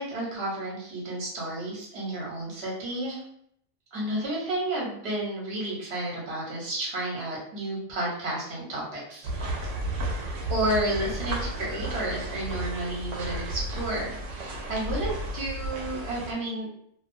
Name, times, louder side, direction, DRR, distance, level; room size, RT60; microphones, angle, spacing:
voice 1, 0.0-3.2 3.9-9.6 10.5-16.7, right 1 dB, 60° right, -4 dB, 1.1 m, -31 dB
sound 1, 9.2-16.3, right 1 dB, 85° right, 0.9 m, -33 dB
2.5 x 2.2 x 2.5 m, 0.68 s
omnidirectional pair, 1.2 m